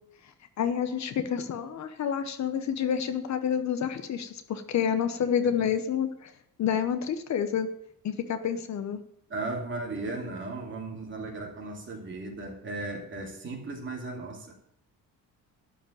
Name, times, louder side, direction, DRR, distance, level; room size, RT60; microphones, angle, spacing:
voice 1, 0.6-6.3 6.6-7.7 8.0-9.0, left 8 dB, 50° left, 10 dB, 1.0 m, -28 dB
voice 2, 9.3-14.5, right 2 dB, 35° right, 0 dB, 2.9 m, -36 dB
12.0 x 5.2 x 8.6 m, 0.71 s
cardioid pair, 150°, 35 cm